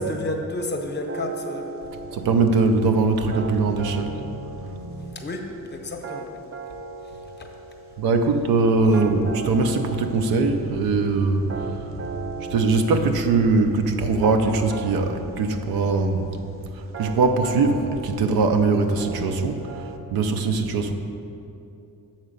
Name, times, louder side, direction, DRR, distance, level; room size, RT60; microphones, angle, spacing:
voice 1, 0.0-1.9 5.1-6.3 7.0-7.5 8.8-9.0, left 1 dB, 30° left, 3 dB, 0.7 m, -31 dB
sound 1, 1.1-20.0, right 4 dB, 40° right, 0.5 m, -38 dB
voice 2, 2.1-5.1 8.0-16.3 16.7-20.9, right 3 dB, 90° right, 6 dB, 0.7 m, -22 dB
6.8 x 4.3 x 6.5 m, 2.7 s
cardioid pair, 130°, 35 cm